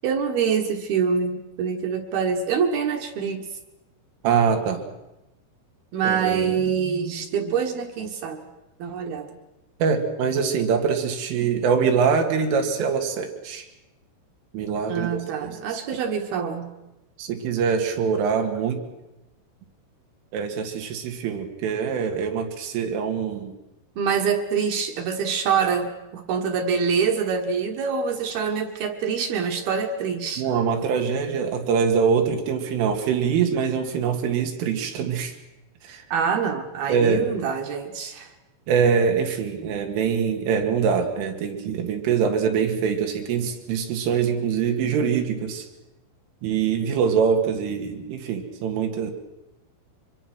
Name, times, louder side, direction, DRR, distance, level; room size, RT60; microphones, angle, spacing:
voice 1, 0.0-3.4 5.9-8.4 8.8-9.3 14.9-16.7 24.0-30.4 36.1-38.3, right 6 dB, 65° right, 5 dB, 2.8 m, -25 dB
voice 2, 4.2-4.8 6.0-6.7 9.8-13.7 14.5-15.1 15.4-15.6 17.2-18.8 20.3-23.5 30.4-35.4 35.8-36.1 36.9-37.3 38.7-45.7 46.4-49.1, right 6 dB, 90° right, 4 dB, 4.6 m, -24 dB
24.5 x 22.5 x 6.1 m, 1.0 s
omnidirectional pair, 5.6 m